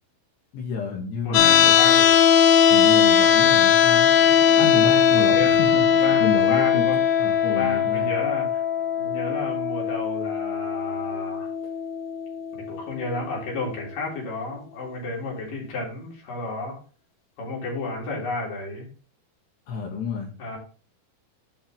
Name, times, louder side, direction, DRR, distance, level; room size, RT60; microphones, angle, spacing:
voice 1, 0.5-1.7 2.7-4.1 4.6-8.1 19.7-20.3, left 5 dB, 65° left, -2 dB, 3.6 m, -30 dB
voice 2, 1.2-2.2 5.1-5.5 5.9-7.0 7.4-8.6 9.0-11.5 12.6-16.8 17.4-18.9 20.4-20.6, left 3 dB, 45° left, -3 dB, 4.5 m, -32 dB
sound 1, 1.3-13.4, left 8 dB, 85° left, 2.3 m, -19 dB
sound 2, 4.1-9.1 9.6-9.7, right 3 dB, 75° right, 3.7 m, -41 dB
9.0 x 5.4 x 3.7 m, 0.38 s
omnidirectional pair, 5.7 m